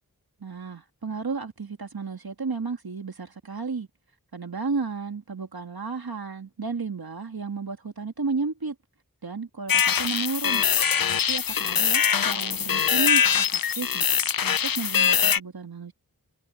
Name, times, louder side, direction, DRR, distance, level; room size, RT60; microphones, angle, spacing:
voice 1, 0.4-3.9 4.3-8.8 9.2-10.6 11.3-15.9, right 4 dB, 90° right, 1.9 m, -33 dB
sound 1, 9.7-15.4, left 7 dB, 75° left, 0.6 m, -23 dB
wide cardioid pair, 45°, 36 cm